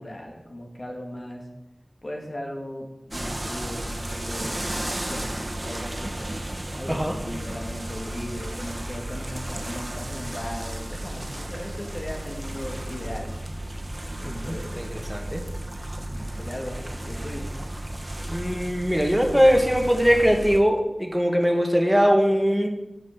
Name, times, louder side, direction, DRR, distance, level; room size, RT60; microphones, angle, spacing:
voice 1, 0.0-1.5 2.0-6.3 6.7-13.3 14.2-14.8 16.0-17.5, left 1 dB, 50° left, 0 dB, 2.0 m, -37 dB
sound 1, 3.1-20.6, right 1 dB, 35° right, 1.2 m, -34 dB
voice 2, 14.2-15.4 18.3-22.7, equal, 5° right, 2 dB, 1.4 m, -21 dB
6.4 x 6.1 x 7.3 m, 0.89 s
wide cardioid pair, 40°, 0 cm